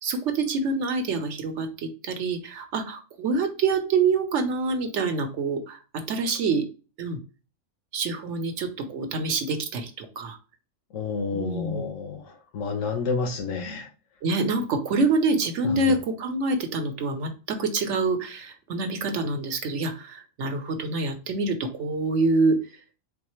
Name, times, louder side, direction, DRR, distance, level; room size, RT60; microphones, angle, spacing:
voice 1, 0.0-6.7 7.0-7.2 7.9-10.4 11.3-11.9 14.2-22.6, right 3 dB, 70° right, 6 dB, 1.1 m, -26 dB
voice 2, 10.9-13.9 15.6-16.0, left 4 dB, 90° left, 5 dB, 1.2 m, -30 dB
4.2 x 3.2 x 3.0 m, 0.34 s
omnidirectional pair, 1.3 m